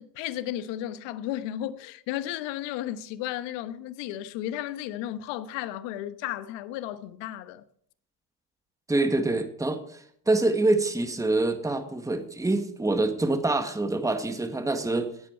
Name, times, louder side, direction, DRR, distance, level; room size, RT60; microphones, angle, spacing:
voice 1, 0.0-7.6, left 12 dB, 60° left, 1.2 m, -34 dB
voice 2, 8.9-9.8 10.3-15.1, right 2 dB, 5° right, 1.6 m, -25 dB
17.5 x 8.6 x 4.5 m
hypercardioid pair, 80°, 49 cm